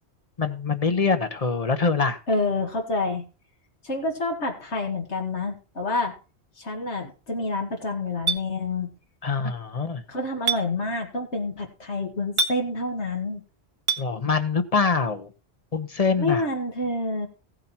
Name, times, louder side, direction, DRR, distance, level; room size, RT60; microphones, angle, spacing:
voice 1, 0.4-2.2 9.2-10.0 14.0-15.3 15.7-16.5, left 4 dB, 35° left, 10 dB, 1.0 m, -24 dB
voice 2, 2.3-3.3 3.8-6.1 6.6-8.9 10.1-13.4 16.2-17.3, left 2 dB, 80° left, 3 dB, 2.4 m, -28 dB
Chink clink, 8.3-8.4 10.5-10.6 12.4-12.6 13.9-14.0, right 5 dB, 60° right, 1.2 m, -23 dB
16.0 x 7.8 x 4.4 m, 0.34 s
omnidirectional pair, 1.1 m